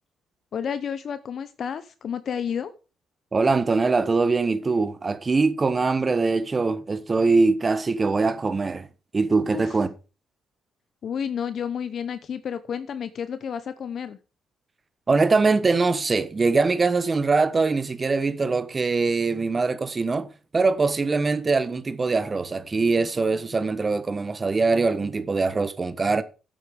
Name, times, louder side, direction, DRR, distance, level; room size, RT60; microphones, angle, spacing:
voice 1, 0.5-2.7 9.5-9.8 11.0-14.2, left 7 dB, 55° left, 0.7 m, -31 dB
voice 2, 3.3-8.9 9.1-9.9 15.1-26.2, right 3 dB, 30° right, 1.2 m, -22 dB
9.5 x 8.3 x 5.1 m
cardioid pair, 90°, 0 cm